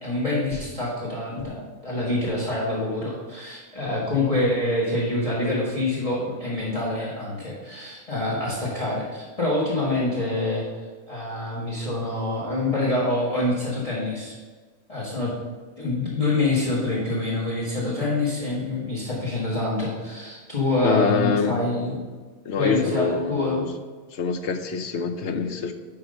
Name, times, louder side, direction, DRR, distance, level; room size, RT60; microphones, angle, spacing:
voice 1, 0.0-10.6 11.1-14.4 14.9-15.3 15.8-22.0 22.6-23.7, left 2 dB, 30° left, -4 dB, 1.6 m, -26 dB
voice 2, 20.8-21.5 22.5-23.7 24.1-25.7, left 5 dB, 70° left, 8 dB, 1.0 m, -25 dB
10.5 x 3.9 x 5.3 m, 1.4 s
omnidirectional pair, 1.3 m